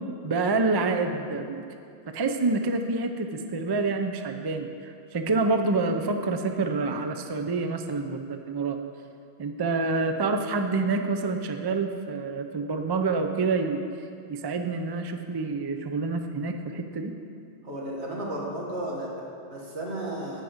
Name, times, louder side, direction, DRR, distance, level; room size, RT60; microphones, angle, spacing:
voice 1, 0.2-1.6 2.1-8.8 9.4-13.8 14.3-17.1, right 3 dB, 40° right, 6 dB, 0.3 m, -27 dB
voice 2, 17.6-20.4, right 1 dB, 70° right, -3 dB, 2.0 m, -34 dB
10.5 x 4.9 x 7.9 m, 2.4 s
omnidirectional pair, 1.2 m